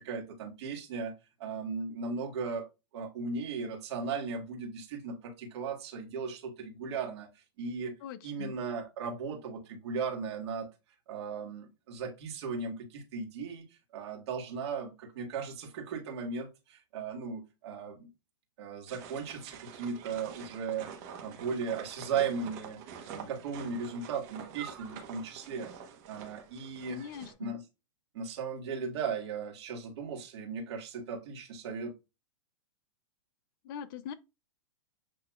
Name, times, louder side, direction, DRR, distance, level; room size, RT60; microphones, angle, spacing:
voice 1, 0.0-7.9 8.2-10.7 11.1-13.6 13.9-18.1 18.6-20.9 21.2-22.8 23.1-25.7 26.1-27.0 27.4-27.6 28.1-31.9, right 5 dB, 60° right, 1.6 m, -37 dB
voice 2, 8.0-8.5 26.9-27.6 33.6-34.1, left 9 dB, 45° left, 0.5 m, -41 dB
sound 1, 18.9-27.3, right 7 dB, 40° right, 1.1 m, -47 dB
7.9 x 2.8 x 2.3 m
hypercardioid pair, 140°, 16 cm